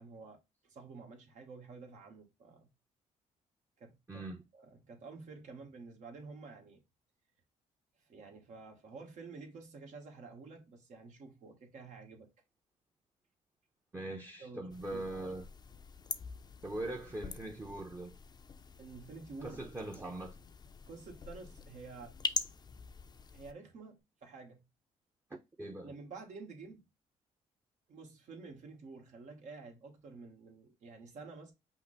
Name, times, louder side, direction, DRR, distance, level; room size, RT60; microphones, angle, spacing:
voice 1, 0.0-2.7 3.8-4.2 4.5-6.8 8.1-12.3 14.4-15.0 18.8-19.7 20.8-22.2 23.3-24.6 25.8-26.9 27.9-31.5, right 4 dB, 65° right, 1.5 m, -50 dB
voice 2, 4.1-4.4 13.9-15.5 16.6-18.2 19.4-20.3 25.6-25.9, right 2 dB, 20° right, 0.8 m, -41 dB
sound 1, 14.7-23.5, left 5 dB, 30° left, 0.5 m, -44 dB
5.6 x 2.1 x 4.0 m
cardioid pair, 90°, 13 cm